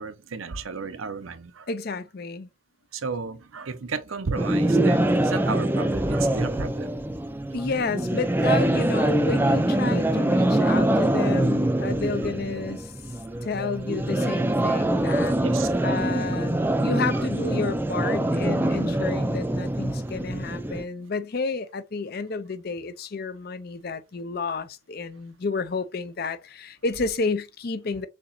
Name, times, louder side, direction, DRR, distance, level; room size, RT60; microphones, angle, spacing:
voice 1, 0.0-1.7 2.9-6.9 15.4-15.7, right 4 dB, 90° right, 0.7 m, -33 dB
voice 2, 1.7-2.5 7.5-12.9 13.4-15.4 15.8-16.6 16.8-28.1, left 4 dB, 50° left, 0.5 m, -31 dB
sound 1, 4.4-20.8, right 1 dB, 10° right, 0.4 m, -24 dB
6.6 x 2.9 x 2.7 m
head